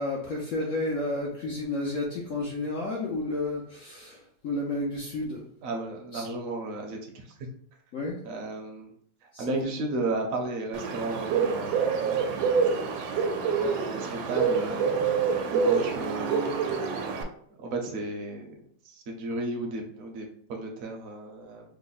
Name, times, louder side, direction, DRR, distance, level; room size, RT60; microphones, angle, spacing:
voice 1, 0.0-5.4 6.1-6.2 7.9-8.2 9.3-9.5, left 2 dB, 70° left, -3 dB, 0.7 m, -31 dB
voice 2, 5.6-7.0 8.2-8.9 9.4-12.6 13.4-15.2 15.5-16.5 17.6-18.5 18.9-21.6, right 2 dB, 60° right, 1 dB, 1.0 m, -34 dB
Bird, 10.7-17.2, right 6 dB, 85° right, 1.4 m, -27 dB
3.4 x 2.1 x 3.9 m, 0.62 s
omnidirectional pair, 2.1 m